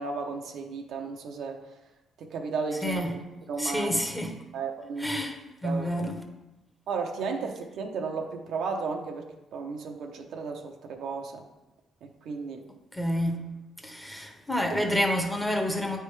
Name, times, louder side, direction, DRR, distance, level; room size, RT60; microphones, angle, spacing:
voice 1, 0.0-1.6 2.2-3.1 3.5-4.0 4.5-5.2 5.6-6.0 6.9-11.4 12.0-12.6, right 4 dB, 75° right, 3 dB, 0.7 m, -34 dB
voice 2, 2.8-3.2 3.6-4.4 5.0-5.4 5.6-6.2 12.9-13.4 13.8-16.0, equal, 5° left, 3 dB, 0.9 m, -28 dB
9.1 x 3.4 x 3.2 m, 1.0 s
cardioid pair, 90°, 0 cm